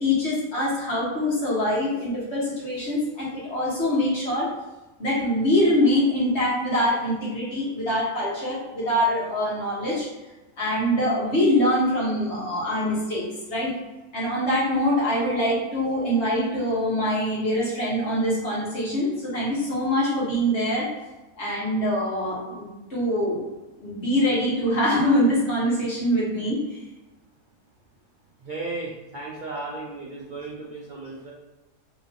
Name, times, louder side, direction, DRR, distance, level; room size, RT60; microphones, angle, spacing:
voice 1, 0.0-4.5 5.0-10.1 10.6-13.7 14.1-20.9 21.4-22.6 22.9-23.5 23.8-26.6, left 1 dB, 50° left, -7 dB, 1.6 m, -24 dB
voice 2, 28.4-31.3, right 3 dB, 65° right, -4 dB, 0.4 m, -35 dB
3.0 x 3.0 x 4.1 m, 1.1 s
omnidirectional pair, 1.5 m